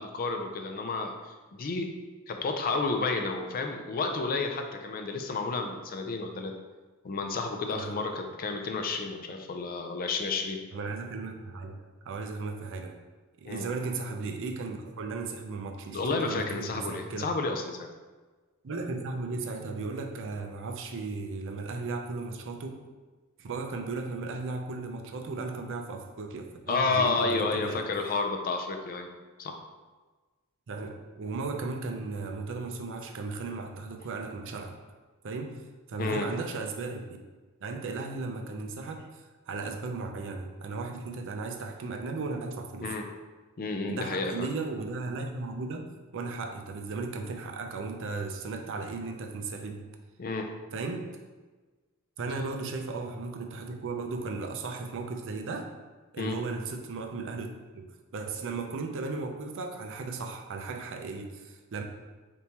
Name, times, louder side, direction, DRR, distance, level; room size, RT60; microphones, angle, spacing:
voice 1, 0.0-1.9 2.3-6.5 7.0-10.6 13.5-13.7 15.9-17.9 26.7-29.1 29.4-29.6 36.0-36.3 42.8-43.1 43.6-44.5 50.2-50.5 56.2-56.4, left 3 dB, 40° left, 4 dB, 0.4 m, -31 dB
voice 2, 10.7-11.8 12.1-13.0 13.4-17.3 18.6-22.9 23.4-27.8 30.7-34.7 35.2-35.6 35.9-37.1 37.6-42.9 43.9-45.9 46.1-49.8 50.7-51.1 52.2-55.7 56.1-57.9 58.1-61.8, right 3 dB, 60° right, 4 dB, 0.5 m, -36 dB
4.1 x 3.5 x 2.9 m, 1.3 s
head